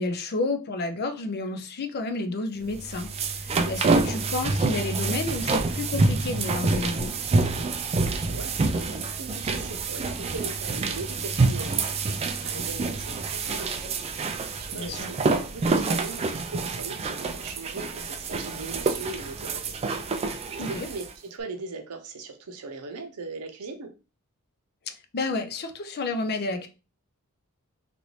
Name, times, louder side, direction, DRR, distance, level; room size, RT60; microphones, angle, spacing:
voice 1, 0.0-7.1 14.7-15.1 20.6-20.9 24.9-26.7, left 2 dB, 45° left, 0.5 m, -31 dB
sound 1, 2.7-21.1, right 3 dB, 25° right, 0.3 m, -27 dB
voice 2, 8.0-13.9 14.6-19.6 20.5-21.0 21.3-23.9, right 3 dB, 80° right, 0.6 m, -39 dB
3.0 x 2.6 x 3.1 m
head